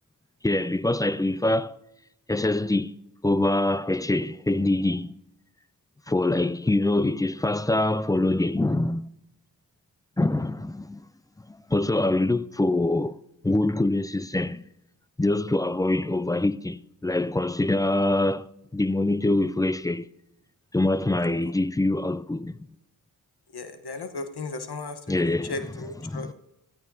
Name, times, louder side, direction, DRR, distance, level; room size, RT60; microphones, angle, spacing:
voice 1, 0.4-1.8 2.3-2.9 3.2-5.1 6.1-9.1 10.2-11.0 11.5-14.6 15.2-20.1 20.7-22.7 25.1-25.7 26.0-26.3, left 2 dB, 10° left, 0.3 m, -24 dB
voice 2, 23.5-25.0 25.5-26.3, left 3 dB, 65° left, 1.1 m, -35 dB
15.5 x 14.0 x 2.7 m
cardioid pair, 40°, 43 cm